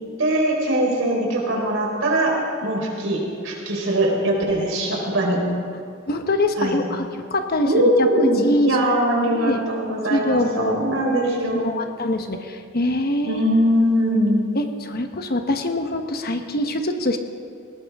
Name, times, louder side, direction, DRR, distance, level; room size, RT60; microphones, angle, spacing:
voice 1, 0.2-2.3 2.6-3.2 3.4-5.4 6.6-6.8 7.6-11.8 13.2-14.4, right 1 dB, 75° right, -2 dB, 4.2 m, -21 dB
voice 2, 6.1-8.8 9.3-9.6 10.1-10.8 11.5-13.4 14.5-17.2, left 1 dB, 50° left, 6 dB, 1.1 m, -24 dB
20.0 x 18.0 x 3.6 m, 2.3 s
head